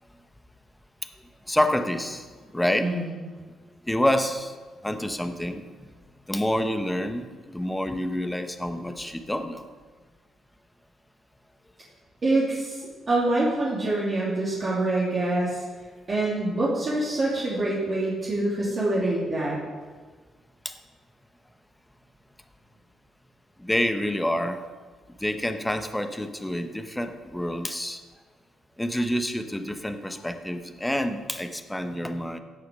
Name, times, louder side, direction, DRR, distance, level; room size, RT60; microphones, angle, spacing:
voice 1, 1.5-2.9 3.4-3.5 3.8-4.5 4.8-5.7 6.3-9.6 20.6-20.8 23.6-24.6 25.2-28.0 28.8-32.4, left 1 dB, 5° left, 7 dB, 1.0 m, -28 dB
voice 2, 2.8-3.1 12.2-15.6 16.1-19.6, right 2 dB, 40° right, -7 dB, 3.2 m, -25 dB
16.5 x 6.5 x 5.4 m, 1.5 s
cardioid pair, 90°, 0 cm